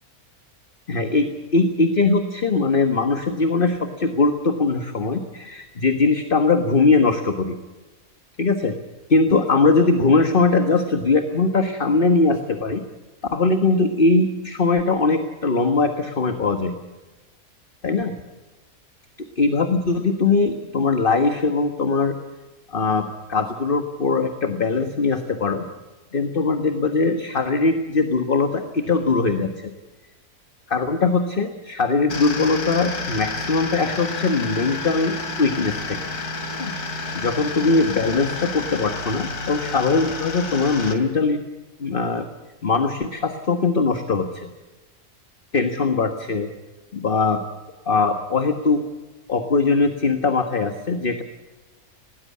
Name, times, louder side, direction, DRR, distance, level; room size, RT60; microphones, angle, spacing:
voice 1, 0.9-7.6 8.4-8.7 9.1-12.8 13.3-16.7 17.8-18.1 19.4-22.2 22.7-25.6 26.1-29.7 30.7-36.0 36.6-41.4 41.8-42.3 42.6-44.5 45.5-46.5 46.9-47.4 47.9-48.8 49.3-51.2, left 3 dB, 35° left, 7 dB, 1.6 m, -21 dB
sound 1, 32.1-40.9, left 3 dB, 90° left, 3.3 m, -30 dB
20.0 x 19.0 x 8.5 m, 1.2 s
omnidirectional pair, 1.6 m